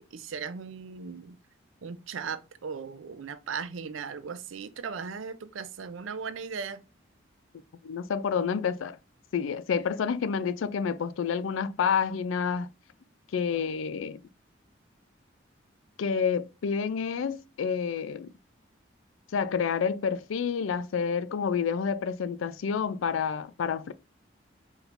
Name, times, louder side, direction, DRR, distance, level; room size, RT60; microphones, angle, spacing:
voice 1, 0.0-1.4 1.8-6.8, right 6 dB, 80° right, 0.5 m, -37 dB
voice 2, 7.8-9.0 9.3-12.7 13.3-14.2 16.0-18.3 19.3-23.9, left 6 dB, 85° left, 0.4 m, -29 dB
4.9 x 3.2 x 2.5 m
head